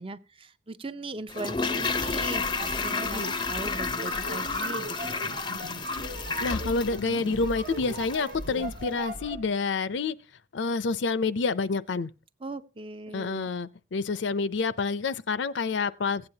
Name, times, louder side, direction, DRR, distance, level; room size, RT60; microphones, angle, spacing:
voice 1, 0.0-5.2 12.4-13.5, right 2 dB, 30° right, 0.5 m, -39 dB
Toilet flush, 1.3-8.4 8.6-8.7, left 4 dB, 25° left, 0.5 m, -32 dB
sound 1, 1.7-9.5, right 2 dB, 50° right, 0.9 m, -38 dB
voice 2, 3.0-3.3 6.4-10.2 10.5-12.1 13.1-16.3, left 4 dB, 70° left, 0.5 m, -28 dB
16.0 x 8.8 x 2.8 m
head